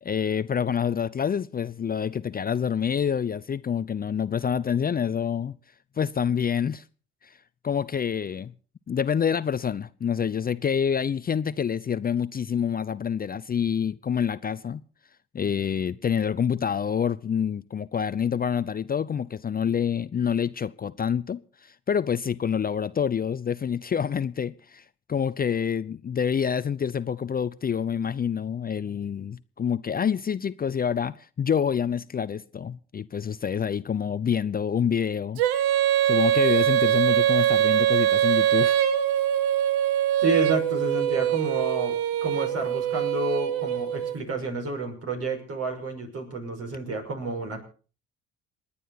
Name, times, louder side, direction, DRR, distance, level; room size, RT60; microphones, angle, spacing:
voice 1, 0.0-5.6 6.0-6.8 7.2-7.4 7.6-8.5 8.9-14.8 15.3-35.4 36.1-38.8, left 7 dB, 30° left, 0.7 m, -27 dB
Female singing, 35.4-44.2, right 11 dB, 75° right, 1.2 m, -23 dB
voice 2, 40.2-47.6, right 3 dB, 50° right, 5.8 m, -30 dB
28.0 x 10.0 x 4.2 m
hypercardioid pair, 55°, 31 cm